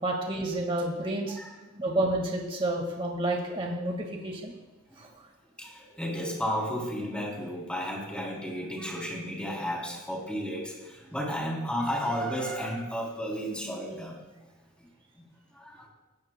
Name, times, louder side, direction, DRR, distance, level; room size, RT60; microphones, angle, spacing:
voice 1, 0.0-1.4 1.8-4.5 5.0-5.1, right 1 dB, 25° right, 0 dB, 1.7 m, -30 dB
voice 2, 1.3-1.8 4.9-5.0 5.6-14.5 14.8-14.9 15.1-15.9, equal, 5° left, -3 dB, 3.1 m, -33 dB
18.0 x 16.0 x 2.2 m, 1.1 s
head